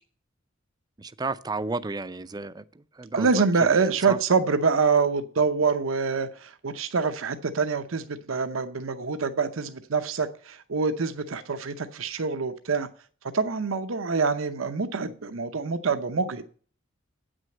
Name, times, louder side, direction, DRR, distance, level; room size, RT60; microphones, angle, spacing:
voice 1, 1.0-3.4 3.7-4.2, right 3 dB, 20° right, 0.4 m, -33 dB
voice 2, 3.1-12.9 13.3-16.4, right 4 dB, 85° right, 0.7 m, -25 dB
8.6 x 6.3 x 7.7 m
head